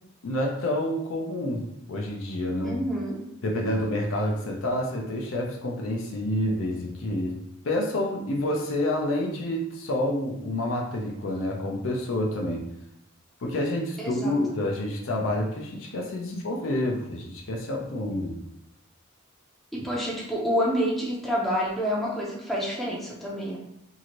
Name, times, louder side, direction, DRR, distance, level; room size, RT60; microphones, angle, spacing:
voice 1, 0.2-2.8 3.4-7.3 7.6-12.6 13.4-18.3, left 1 dB, 70° left, 0 dB, 0.5 m, -28 dB
voice 2, 2.6-3.2 14.0-14.4 19.7-23.6, equal, ahead, -4 dB, 0.5 m, -28 dB
2.7 x 2.5 x 2.9 m, 0.76 s
head